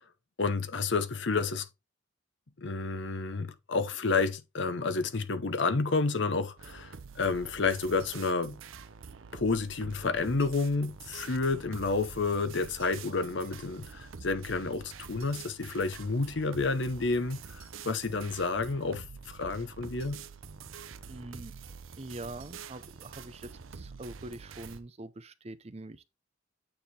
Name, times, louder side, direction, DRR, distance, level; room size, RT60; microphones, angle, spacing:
voice 1, 0.4-1.7 2.6-8.6 9.3-20.2, left 3 dB, 60° left, 0.8 m, -30 dB
sound 1, 6.6-24.8, right 5 dB, 80° right, 0.8 m, -47 dB
voice 2, 21.1-21.5 22.0-26.1, right 2 dB, 30° right, 0.6 m, -44 dB
8.9 x 3.7 x 4.2 m
head